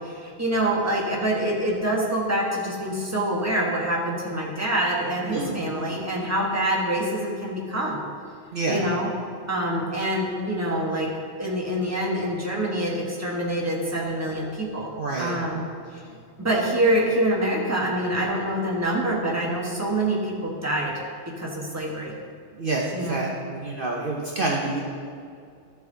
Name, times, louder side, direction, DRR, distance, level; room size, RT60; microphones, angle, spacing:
voice 1, 0.0-8.0 8.7-9.1 9.5-14.9 15.2-15.6 15.9-16.0 16.4-20.9 21.2-22.1 22.9-23.2, right 1 dB, 15° right, -3 dB, 1.5 m, -26 dB
voice 2, 5.3-5.6 8.5-8.9 14.9-15.4 16.0-16.2 22.5-24.8, right 2 dB, 50° right, -2 dB, 1.1 m, -28 dB
14.0 x 6.9 x 3.9 m, 2.3 s
omnidirectional pair, 1.3 m